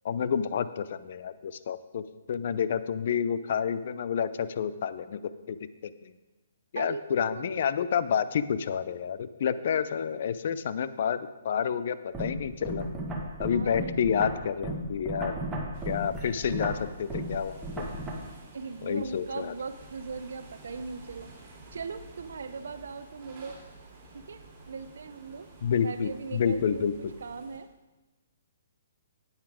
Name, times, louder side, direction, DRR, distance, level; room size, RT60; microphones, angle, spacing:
voice 1, 0.0-5.6 5.8-6.1 6.7-12.9 13.4-15.3 15.9-17.9 18.8-19.5 25.6-27.1, left 7 dB, 55° left, 14 dB, 0.6 m, -29 dB
voice 2, 6.7-7.5 13.5-14.3 18.5-21.3 21.7-23.6 24.1-25.5 25.8-26.9 27.2-27.7, right 4 dB, 75° right, 12 dB, 0.7 m, -39 dB
sound 1, 12.1-18.1, right 1 dB, 10° right, 1.5 m, -35 dB
sound 2, 15.7-27.6, right 2 dB, 35° right, 3.8 m, -51 dB
9.2 x 9.0 x 5.0 m, 1.1 s
hypercardioid pair, 155°, 0 cm